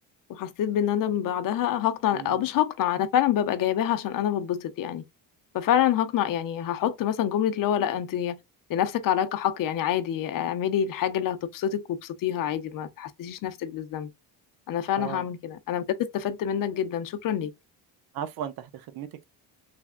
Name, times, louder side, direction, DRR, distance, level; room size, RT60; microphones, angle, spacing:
voice 1, 0.3-5.0 5.5-8.4 8.7-14.1 14.7-15.8 16.1-17.5, left 10 dB, 50° left, 0.6 m, -26 dB
voice 2, 2.1-2.4 15.0-15.3 18.1-19.2, right 9 dB, 60° right, 0.6 m, -36 dB
3.3 x 2.2 x 2.4 m
cardioid pair, 110°, 41 cm